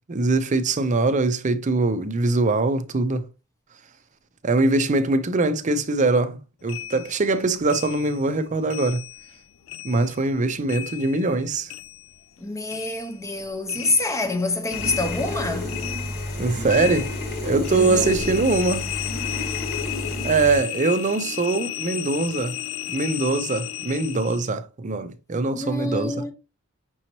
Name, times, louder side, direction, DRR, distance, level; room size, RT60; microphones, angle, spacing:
voice 1, 0.1-3.2 4.4-9.0 9.8-11.7 16.4-17.1 17.4-18.9 20.2-22.6 22.9-26.2, right 3 dB, 35° right, 0.5 m, -22 dB
sound 1, 6.7-9.4 9.7-12.4 12.7-24.5, left 12 dB, 65° left, 0.3 m, -34 dB
voice 2, 12.4-15.8 17.7-18.1 25.5-26.3, left 2 dB, 15° left, 0.6 m, -26 dB
sound 2, 14.7-20.6, left 2 dB, 50° left, 1.1 m, -30 dB
6.1 x 2.9 x 2.9 m
head